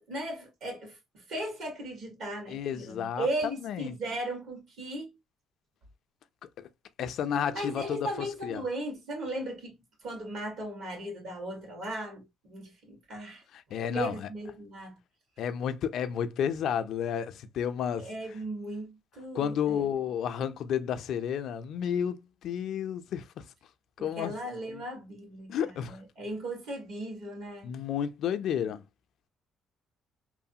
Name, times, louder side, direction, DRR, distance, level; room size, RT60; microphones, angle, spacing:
voice 1, 0.1-5.2 7.5-13.4 13.9-15.0 18.0-19.9 24.0-27.7, right 1 dB, 70° right, 1.6 m, -37 dB
voice 2, 2.5-3.3 3.6-4.0 6.6-6.7 7.0-8.0 8.4-8.6 13.5-14.3 15.4-18.1 19.3-23.4 24.0-24.3 24.7-24.8 25.5-26.0 27.6-28.8, left 8 dB, 70° left, 0.4 m, -31 dB
3.1 x 2.0 x 2.7 m
supercardioid pair, 80°, 0 cm